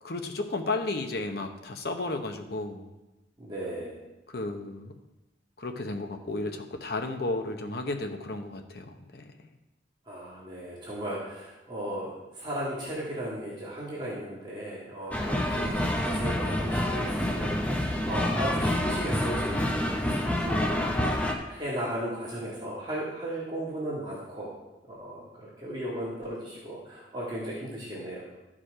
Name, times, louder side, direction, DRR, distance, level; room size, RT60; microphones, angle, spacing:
voice 1, 0.0-2.9 4.3-4.9 5.6-9.2, left 2 dB, 60° left, 5 dB, 0.9 m, -33 dB
voice 2, 3.4-4.0 10.1-24.5 24.9-28.3, right 1 dB, 25° right, -7 dB, 1.8 m, -36 dB
sound 1, 15.1-21.3, left 1 dB, 10° left, 0.8 m, -28 dB
13.0 x 5.0 x 4.9 m, 1.0 s
head